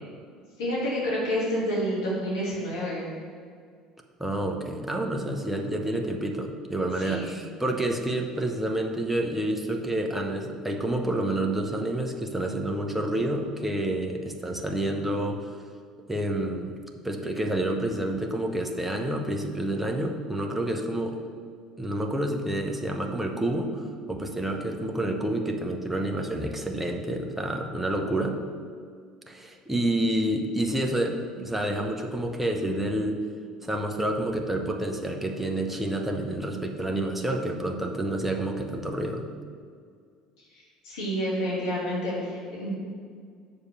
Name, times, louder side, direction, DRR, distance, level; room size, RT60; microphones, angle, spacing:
voice 1, 0.6-3.0 7.0-7.4 40.5-42.7, equal, 65° left, -6 dB, 2.3 m, -29 dB
voice 2, 4.2-15.5 16.1-16.7 17.0-21.2 21.8-28.4 29.3-33.2 33.6-39.2, right 1 dB, 5° right, 3 dB, 1.0 m, -29 dB
6.6 x 5.4 x 6.9 m, 2.1 s
figure-of-eight pair, 60°, 2 cm